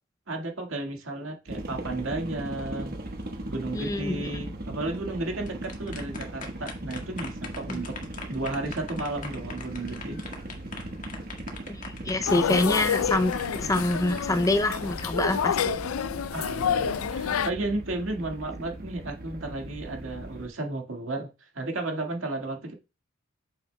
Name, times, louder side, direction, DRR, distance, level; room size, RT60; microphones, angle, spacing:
voice 1, 0.3-3.0 3.5-10.2 16.3-22.7, right 2 dB, 70° right, 1.8 m, -33 dB
sound 1, 1.5-20.5, right 1 dB, 45° right, 1.3 m, -38 dB
voice 2, 3.7-4.2 7.7-7.8 11.7-15.6, left 2 dB, 15° left, 0.5 m, -26 dB
sound 2, 5.3-15.0, left 4 dB, 40° left, 1.6 m, -42 dB
sound 3, 12.3-17.5, left 7 dB, 90° left, 0.4 m, -28 dB
8.8 x 6.8 x 2.2 m
head